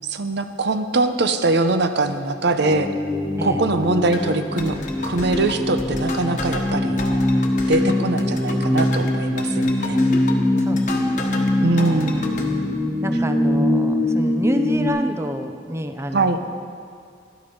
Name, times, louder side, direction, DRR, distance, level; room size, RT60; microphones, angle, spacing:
voice 1, 0.1-2.9 3.4-4.8 5.0-7.0 7.7-10.0 11.6-12.1 16.1-16.4, right 2 dB, 65° right, 9 dB, 0.7 m, -22 dB
sound 1, 2.6-14.9, left 1 dB, ahead, 1.7 m, -22 dB
voice 2, 3.4-3.7 10.6-11.4 13.0-16.4, equal, 15° right, 7 dB, 0.6 m, -29 dB
sound 2, 4.1-11.5 11.8-12.4, left 2 dB, 45° left, 1.2 m, -32 dB
12.5 x 10.5 x 5.4 m, 2.3 s
head